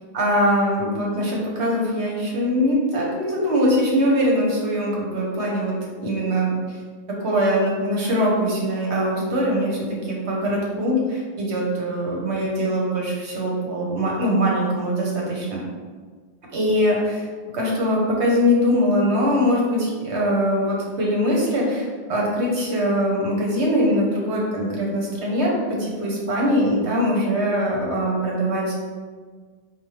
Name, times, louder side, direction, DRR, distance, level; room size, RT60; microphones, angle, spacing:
voice 1, 0.1-5.7 6.0-6.8 7.2-15.6 16.5-17.2 17.5-25.5 25.8-28.7, equal, 80° right, -3 dB, 1.2 m, -22 dB
4.2 x 2.3 x 3.1 m, 1.5 s
omnidirectional pair, 1.1 m